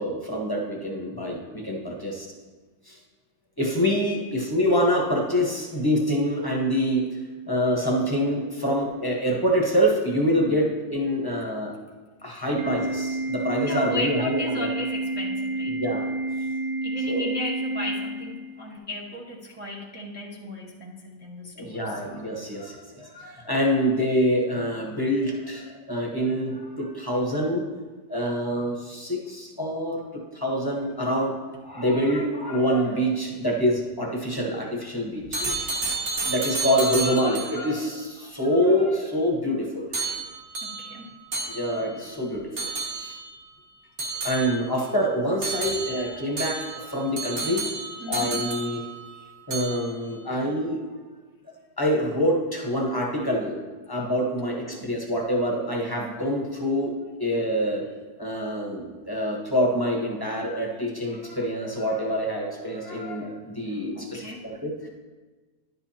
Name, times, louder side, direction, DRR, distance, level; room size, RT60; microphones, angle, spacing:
voice 1, 0.0-2.3 2.9-3.0 3.6-7.2 7.5-11.7 12.2-14.7 15.7-16.1 17.1-17.3 21.6-27.7 28.1-30.0 30.3-31.3 31.6-35.7 36.2-39.9 41.5-43.2 44.2-47.7 48.1-48.8 49.5-51.0 51.8-53.6 53.9-56.9 57.2-57.8 58.2-64.9, equal, 15° left, -1 dB, 0.9 m, -26 dB
Organ, 12.6-18.6, right 2 dB, 65° right, 0.6 m, -29 dB
voice 2, 13.6-15.8 16.8-22.0 40.6-41.1 48.0-48.4 49.1-49.3 54.5-55.0 63.9-64.5, left 1 dB, 15° right, -4 dB, 0.4 m, -36 dB
sound 1, 35.3-37.7 39.9-42.0 42.6-43.3 44.0-44.9 45.4-49.2 49.5-50.1, right 3 dB, 40° right, 1.2 m, -31 dB
11.0 x 9.1 x 2.9 m, 1.4 s
omnidirectional pair, 1.7 m